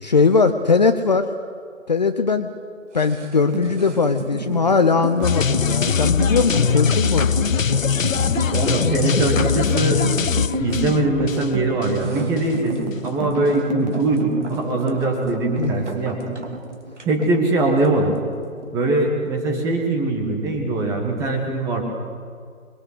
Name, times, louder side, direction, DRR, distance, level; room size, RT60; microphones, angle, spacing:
voice 1, 0.0-1.3 1.9-2.5 2.9-7.4 15.6-15.7, left 4 dB, 30° left, 7 dB, 0.9 m, -19 dB
sound 1, 2.9-20.2 20.5-20.6, right 3 dB, 55° right, 2.9 m, -39 dB
sound 2, 3.5-16.0 16.2-17.3 17.5-17.9 18.2-18.9, right 1 dB, 30° right, 3.2 m, -30 dB
sound 3, 5.2-12.1 12.4-12.5, left 6 dB, 70° left, 0.7 m, -21 dB
voice 2, 8.5-10.0 10.6-16.4 17.0-18.2 18.7-21.8, right 2 dB, 5° right, 2 dB, 1.6 m, -22 dB
29.0 x 22.0 x 8.2 m, 2.1 s
figure-of-eight pair, 145°, 41 cm